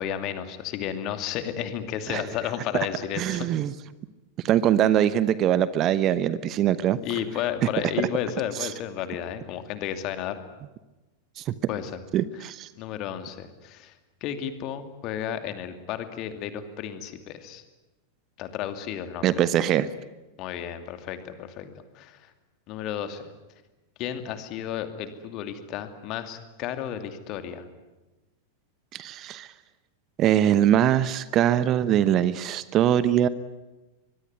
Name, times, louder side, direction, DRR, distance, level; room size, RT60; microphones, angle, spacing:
voice 1, 0.0-3.5 7.0-10.4 11.7-12.0 12.3-12.5 12.8-13.9 14.2-17.6 18.4-19.4 20.4-22.3 22.7-23.2 24.0-27.7, left 10 dB, 40° left, 9 dB, 2.6 m, -33 dB
voice 2, 3.2-3.7 4.4-7.0 8.6-8.7 11.4-11.5 12.1-12.7 19.2-19.9 28.9-29.5 30.2-33.3, right 11 dB, 35° right, 17 dB, 1.0 m, -22 dB
24.5 x 22.0 x 9.7 m, 1.1 s
figure-of-eight pair, 90°, 0 cm